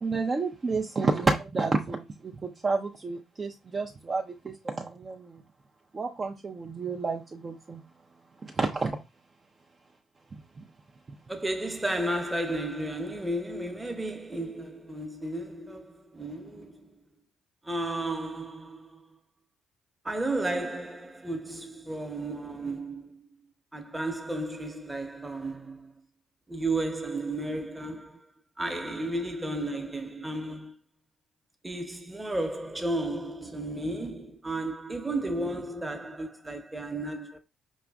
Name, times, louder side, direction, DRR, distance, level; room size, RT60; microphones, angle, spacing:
voice 1, 0.0-5.4 5.9-7.8 8.4-9.0 10.6-10.7, right 3 dB, 35° right, 0.4 m, -30 dB
voice 2, 11.3-16.9 17.6-19.1 20.0-23.3 23.7-25.9 26.5-28.3 28.6-30.7 31.6-37.4, right 1 dB, 15° right, 0.8 m, -33 dB
5.1 x 2.3 x 2.3 m
hypercardioid pair, 50°, 0 cm